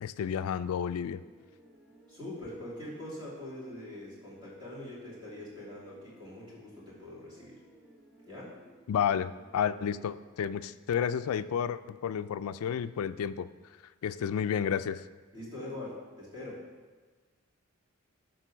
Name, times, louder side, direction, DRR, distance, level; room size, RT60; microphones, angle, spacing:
voice 1, 0.0-1.2 8.9-13.5 14.0-15.0, left 8 dB, 75° left, 13 dB, 0.3 m, -31 dB
sound 1, 1.2-10.4, right 1 dB, ahead, 1.0 m, -59 dB
voice 2, 2.1-7.6 8.3-8.5 15.3-16.6, left 1 dB, 20° right, -8 dB, 3.0 m, -43 dB
11.0 x 3.8 x 6.1 m, 1.4 s
head